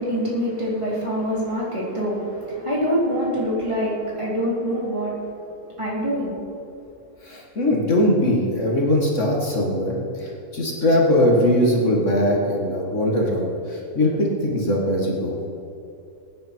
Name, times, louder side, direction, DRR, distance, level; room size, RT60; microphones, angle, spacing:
voice 1, 0.0-5.3 5.8-6.3, equal, 20° right, -8 dB, 3.9 m, -25 dB
voice 2, 7.2-15.4, left 1 dB, 55° left, -2 dB, 2.2 m, -21 dB
22.5 x 9.6 x 4.6 m, 2.6 s
omnidirectional pair, 1.5 m